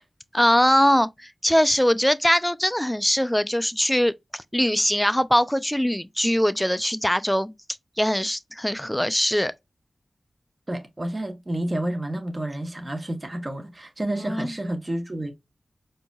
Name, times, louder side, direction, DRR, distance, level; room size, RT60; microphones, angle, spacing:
voice 1, 0.3-7.5 8.0-9.5 14.2-14.5, equal, 5° left, 0.4 m, -22 dB
voice 2, 10.7-15.3, right 1 dB, 30° right, 1.2 m, -30 dB
4.6 x 2.6 x 2.3 m
wide cardioid pair, 65°, 0 cm